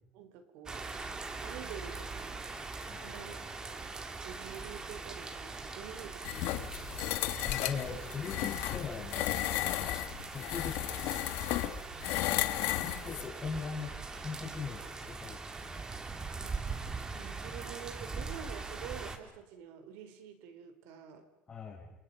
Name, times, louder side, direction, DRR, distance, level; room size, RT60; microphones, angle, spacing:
voice 1, 0.1-0.9 1.4-2.4 3.0-7.5 12.4-13.1 16.4-16.6 17.1-21.3, right 8 dB, 85° right, 8 dB, 4.0 m, -48 dB
sound 1, 0.7-19.2, right 4 dB, 20° right, 2.3 m, -42 dB
voice 2, 2.9-3.3 7.4-9.5 10.3-11.1 12.7-15.9 21.5-21.9, left 5 dB, 25° left, -5 dB, 5.3 m, -41 dB
sound 2, 6.2-13.3, left 16 dB, 75° left, 1.6 m, -34 dB
30.0 x 27.5 x 5.5 m, 0.95 s
cardioid pair, 155°, 4 cm